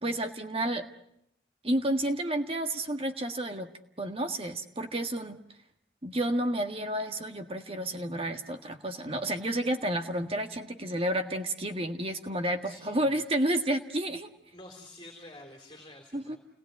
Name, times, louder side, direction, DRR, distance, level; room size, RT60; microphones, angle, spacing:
voice 1, 0.0-0.9 1.6-3.7 4.0-5.4 6.0-14.3 16.1-16.4, right 1 dB, 30° right, 6 dB, 1.7 m, -30 dB
voice 2, 12.6-13.2 14.5-16.4, left 1 dB, 25° left, 1 dB, 3.9 m, -49 dB
30.0 x 19.5 x 9.6 m, 0.77 s
head